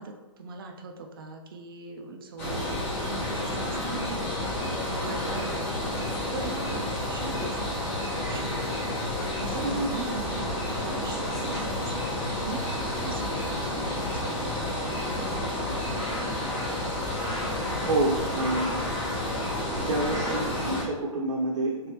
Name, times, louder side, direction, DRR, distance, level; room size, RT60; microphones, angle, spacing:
voice 1, 0.0-2.8 3.1-4.3 4.9-5.6 6.3-8.8 9.4-15.7, right 4 dB, 40° right, 3 dB, 0.5 m, -41 dB
sound 1, 2.4-20.8, left 1 dB, 25° left, 1.1 m, -30 dB
sound 2, 6.6-6.7 7.4-7.6 8.2-8.3 9.0-9.1 9.7-9.8 10.4-10.5 11.1-11.2 11.7-11.8 12.4-12.5, right 1 dB, 15° right, 0.9 m, -49 dB
voice 2, 17.8-18.7 19.8-21.9, right 2 dB, 75° right, -3 dB, 0.9 m, -28 dB
3.7 x 3.4 x 2.9 m, 1.2 s
hypercardioid pair, 170°, 17 cm